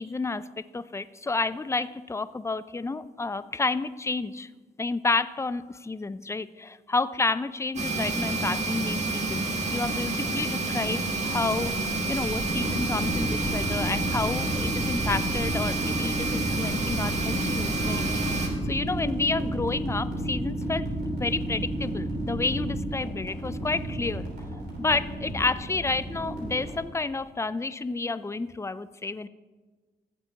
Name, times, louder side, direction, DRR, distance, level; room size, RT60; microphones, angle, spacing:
voice 1, 0.0-4.5 4.8-20.9 21.2-24.3 24.8-29.3, left 3 dB, 15° left, 15 dB, 0.4 m, -30 dB
sound 1, 7.8-18.5, right 3 dB, 40° right, 1.9 m, -29 dB
sound 2, 12.5-26.8, right 1 dB, 70° right, 3.4 m, -31 dB
15.5 x 7.7 x 2.9 m, 1.4 s
supercardioid pair, 50°, 17 cm